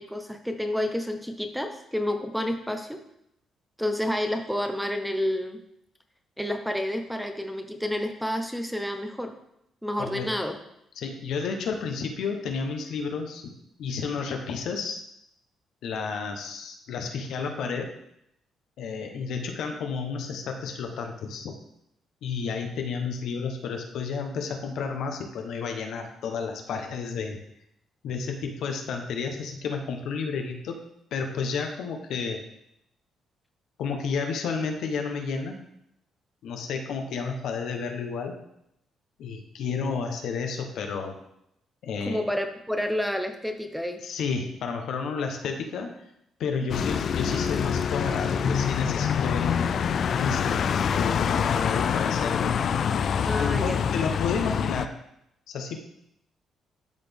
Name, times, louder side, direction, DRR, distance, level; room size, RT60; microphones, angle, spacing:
voice 1, 0.0-3.0 3.8-5.6 6.4-9.3 9.8-10.6 42.1-44.0 53.3-53.8, left 1 dB, ahead, 6 dB, 0.8 m, -29 dB
voice 2, 10.0-10.3 11.0-13.5 13.8-15.0 15.8-17.9 18.8-21.5 22.2-27.4 28.0-30.8 31.1-32.4 33.8-35.6 36.4-38.3 39.2-41.2 41.8-42.2 44.0-45.9 46.4-49.8 50.1-52.6 53.3-54.9 55.5-55.8, left 5 dB, 75° left, 4 dB, 1.0 m, -31 dB
sound 1, 46.7-54.9, left 7 dB, 60° left, 0.3 m, -26 dB
12.0 x 4.1 x 3.5 m, 0.78 s
cardioid pair, 90°, 0 cm